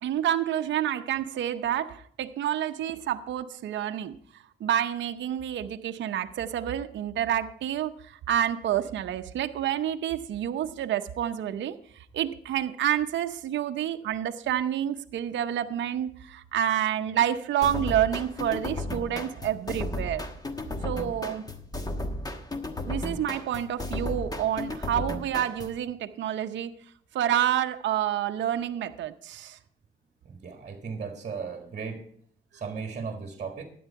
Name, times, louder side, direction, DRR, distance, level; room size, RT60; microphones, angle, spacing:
voice 1, 0.0-4.2 4.6-11.8 12.1-20.3 20.8-21.5 22.9-26.7 27.1-29.6, right 10 dB, 65° right, 0.7 m, -28 dB
sound 1, 17.6-25.8, left 2 dB, 20° left, 1.3 m, -34 dB
voice 2, 30.2-32.0 32.5-33.7, right 5 dB, 35° right, 1.6 m, -36 dB
12.5 x 9.4 x 4.6 m
cardioid pair, 90°, 20 cm